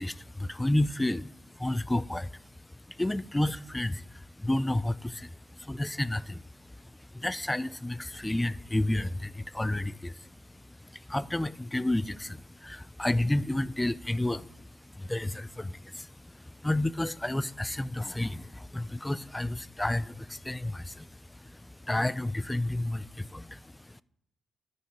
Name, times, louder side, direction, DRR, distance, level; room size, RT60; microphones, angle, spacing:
voice 1, 0.0-24.0, left 1 dB, 15° left, 0.5 m, -31 dB
11.5 x 5.5 x 7.5 m
supercardioid pair, 50°, 0 cm